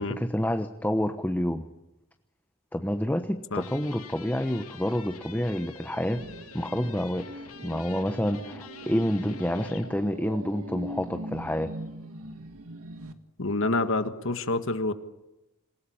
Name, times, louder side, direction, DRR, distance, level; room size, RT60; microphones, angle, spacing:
voice 1, 0.0-1.7 2.7-6.2 6.5-11.7, equal, 10° left, 7 dB, 1.0 m, -28 dB
sound 1, 3.5-9.9, left 5 dB, 90° left, 2.4 m, -46 dB
sound 2, 5.8-13.1, right 1 dB, 85° right, 1.8 m, -41 dB
voice 2, 13.4-14.9, left 2 dB, 65° left, 9 dB, 1.6 m, -27 dB
27.0 x 17.5 x 8.7 m, 0.96 s
head